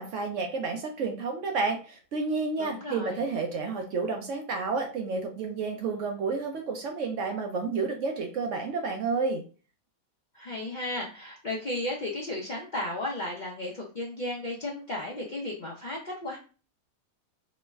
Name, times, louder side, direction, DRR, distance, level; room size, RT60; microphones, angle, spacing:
voice 1, 0.0-9.4, right 4 dB, 65° right, 3 dB, 0.9 m, -30 dB
voice 2, 2.6-3.2 10.3-16.4, left 1 dB, 50° left, -3 dB, 0.5 m, -34 dB
2.9 x 2.1 x 3.4 m, 0.36 s
omnidirectional pair, 1.5 m